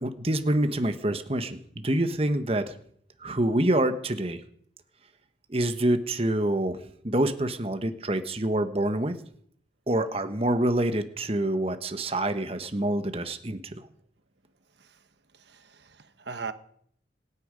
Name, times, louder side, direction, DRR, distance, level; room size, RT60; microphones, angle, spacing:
voice 1, 0.0-2.7 3.2-4.4 5.5-6.8 7.0-9.2 9.9-13.6, right 1 dB, 35° right, 1.2 m, -26 dB
voice 2, 15.5-16.5, right 5 dB, 80° right, 1.2 m, -38 dB
26.0 x 9.9 x 5.2 m
head